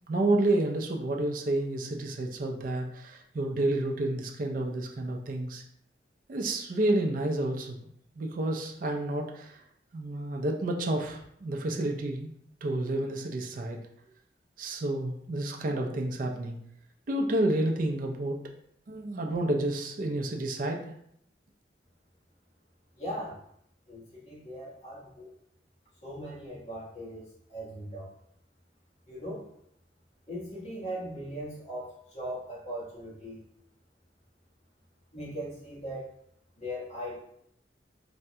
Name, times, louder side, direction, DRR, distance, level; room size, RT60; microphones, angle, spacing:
voice 1, 0.1-5.6 6.3-7.9 8.2-9.6 9.9-12.3 12.6-13.8 14.6-16.6 17.1-18.4 18.9-20.9, right 1 dB, 50° right, 1 dB, 0.4 m, -30 dB
voice 2, 23.0-23.4 23.9-25.3 26.0-28.1 29.1-29.4 30.3-33.4 35.1-36.1 36.6-37.2, equal, 40° left, -7 dB, 1.2 m, -39 dB
3.3 x 2.1 x 2.7 m, 0.72 s
head